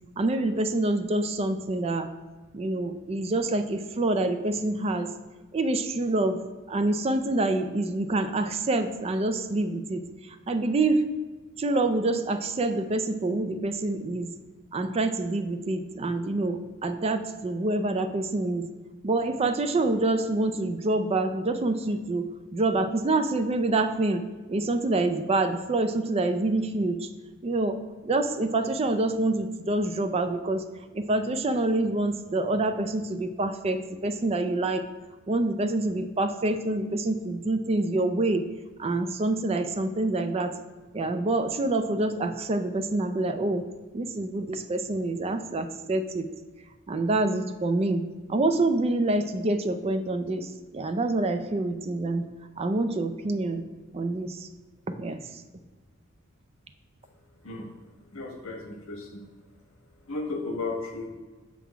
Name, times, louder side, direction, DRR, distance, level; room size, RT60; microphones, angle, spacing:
voice 1, 0.2-2.1 2.5-5.1 5.5-6.4 6.7-11.0 11.6-14.3 14.7-18.7 19.0-24.2 24.5-27.1 27.4-30.6 30.9-34.8 35.3-38.5 38.8-40.5 40.9-43.6 43.9-46.3 46.9-48.0 48.3-52.3 52.6-53.6 53.9-54.5 54.9-55.4, right 2 dB, 30° right, 9 dB, 0.4 m, -26 dB
voice 2, 57.4-57.7 58.1-59.3 60.1-61.1, left 3 dB, 80° left, 2 dB, 1.3 m, -34 dB
6.0 x 3.7 x 5.7 m, 1.3 s
head